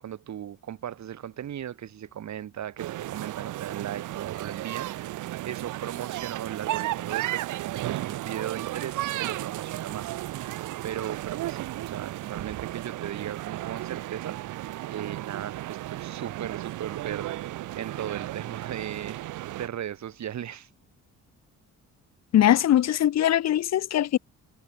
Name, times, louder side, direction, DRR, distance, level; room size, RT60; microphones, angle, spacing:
voice 1, 0.0-10.5 10.8-14.4 14.8-19.2 19.5-20.7, right 10 dB, 65° right, 5.7 m, -37 dB
sound 1, 2.8-19.7, right 15 dB, 85° right, 1.9 m, -34 dB
voice 2, 22.3-24.2, left 12 dB, 60° left, 0.9 m, -21 dB
cardioid pair, 90°, 30 cm